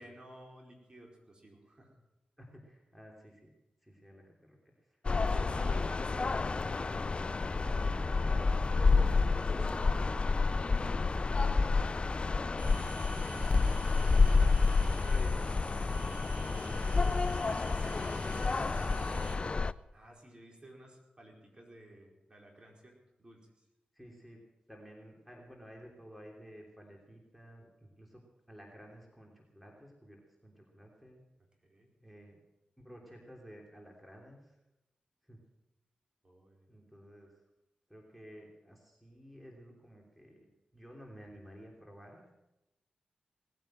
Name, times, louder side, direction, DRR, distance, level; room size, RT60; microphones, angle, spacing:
voice 1, 0.0-1.9 5.2-11.6 19.9-23.5 31.6-31.9 36.2-36.7, right 1 dB, 35° right, 0 dB, 4.5 m, -54 dB
voice 2, 2.4-3.5 3.8-5.0 13.9-14.5 15.0-16.2 16.6-19.4 23.9-24.4 24.7-28.2 28.5-31.2 32.0-32.4 32.8-34.6 35.2-35.4 36.7-37.4 37.9-40.5 40.7-42.3, equal, ahead, 0 dB, 3.2 m, -53 dB
sound 1, 5.0-19.7, left 4 dB, 40° left, 0.4 m, -29 dB
sound 2, 12.6-19.4, right 2 dB, 65° right, 4.3 m, -48 dB
19.0 x 9.1 x 7.6 m, 0.96 s
cardioid pair, 65°, 3 cm